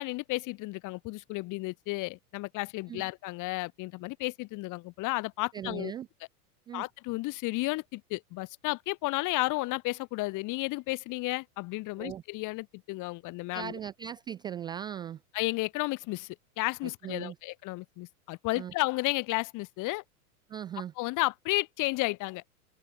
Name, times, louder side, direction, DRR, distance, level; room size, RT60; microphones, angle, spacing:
voice 1, 0.0-5.9 6.7-13.8 15.3-20.0 21.0-22.4, left 22 dB, 40° left, 1.8 m, -33 dB
voice 2, 5.5-6.1 6.7-6.9 12.0-12.2 13.5-15.2 16.8-17.4 18.5-18.7 20.5-20.9, right 9 dB, 10° right, 0.3 m, -38 dB
open air
hypercardioid pair, 110°, 46 cm